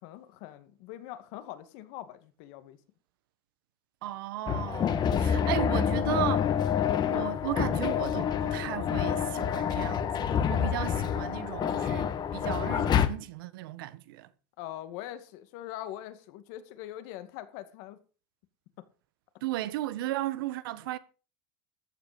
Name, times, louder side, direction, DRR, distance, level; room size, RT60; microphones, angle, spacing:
voice 1, 0.0-2.8 14.6-18.0, left 13 dB, 70° left, 2.2 m, -42 dB
voice 2, 4.0-6.5 7.1-14.3 19.4-21.0, right 15 dB, 85° right, 1.2 m, -35 dB
sound 1, 4.5-13.1, left 8 dB, 40° left, 1.6 m, -27 dB
14.0 x 9.5 x 5.3 m
supercardioid pair, 110°, 11 cm